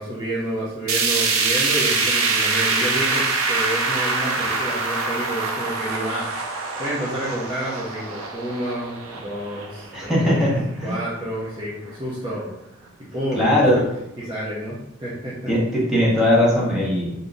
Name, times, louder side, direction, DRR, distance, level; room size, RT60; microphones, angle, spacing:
voice 1, 0.0-10.5 10.8-12.5 13.1-13.8 14.2-15.5, right 1 dB, 20° right, -8 dB, 0.7 m, -29 dB
sound 1, 0.9-11.0 11.4-11.5 11.9-12.0 12.9-13.0, right 3 dB, 85° right, 0.7 m, -24 dB
voice 2, 9.9-11.0 13.3-13.8 15.5-17.1, left 1 dB, ahead, -7 dB, 1.0 m, -19 dB
3.5 x 2.8 x 3.8 m, 0.85 s
head